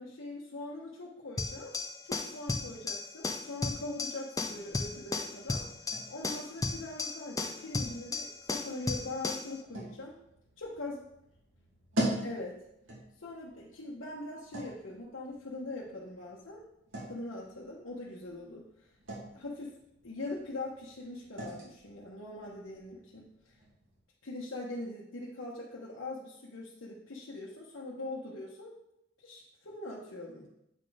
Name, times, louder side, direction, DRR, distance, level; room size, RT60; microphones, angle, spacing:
voice 1, 0.0-1.7 2.0-5.7 6.1-10.1 10.6-11.0 12.2-12.6 13.2-16.6 17.1-18.6 19.3-19.7 20.0-23.3 24.2-28.7 29.2-30.5, left 2 dB, 80° left, -5 dB, 1.1 m, -42 dB
sound 1, 1.4-9.5, left 3 dB, 15° left, 0.5 m, -35 dB
sound 2, 4.4-24.0, right 1 dB, 90° right, 2.3 m, -44 dB
8.1 x 4.2 x 4.9 m, 0.81 s
head